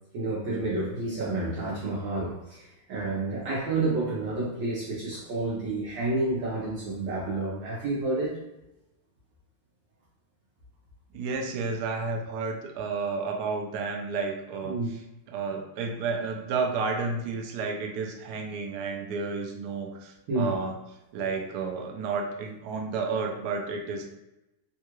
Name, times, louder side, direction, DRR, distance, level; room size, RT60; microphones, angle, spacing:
voice 1, 0.1-8.4 14.6-14.9 20.3-20.6, right 2 dB, 70° right, -6 dB, 1.3 m, -30 dB
voice 2, 11.1-14.8 15.3-20.7 21.1-24.1, right 4 dB, 85° right, 3 dB, 0.9 m, -31 dB
3.6 x 2.3 x 2.9 m, 0.94 s
omnidirectional pair, 2.3 m